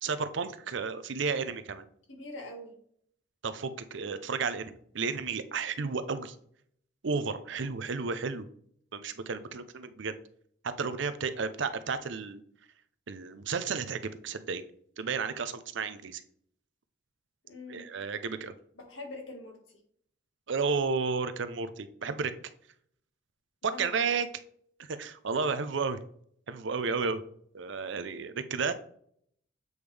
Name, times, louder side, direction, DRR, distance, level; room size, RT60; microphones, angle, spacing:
voice 1, 0.0-1.9 3.4-6.4 7.0-8.5 8.9-10.2 10.8-12.4 13.1-14.6 15.0-16.2 17.7-18.5 20.5-22.3 23.6-24.3 24.9-26.0 26.5-27.2 27.5-28.7, right 5 dB, 65° right, 11 dB, 0.6 m, -32 dB
voice 2, 2.1-2.7 7.6-7.7 17.4-17.9 18.7-19.8 23.6-24.1, left 2 dB, 75° left, 2 dB, 1.9 m, -44 dB
7.9 x 5.2 x 3.4 m, 0.65 s
head